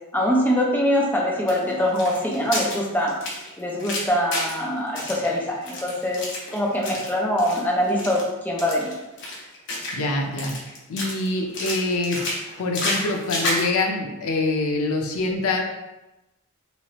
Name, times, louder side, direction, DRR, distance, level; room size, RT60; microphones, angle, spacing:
voice 1, 0.1-3.2 3.6-6.2 6.5-8.9, equal, 10° left, -3 dB, 0.6 m, -23 dB
sound 1, 1.5-4.6 5.0-7.1 7.4-7.6 7.9-8.2 8.6-10.1 10.4-11.3 11.5-13.7, left 1 dB, 55° left, 0.9 m, -30 dB
voice 2, 9.9-10.5 10.9-12.3 12.6-15.6, left 2 dB, 75° left, 1 dB, 0.5 m, -25 dB
3.1 x 3.0 x 2.8 m, 0.99 s
head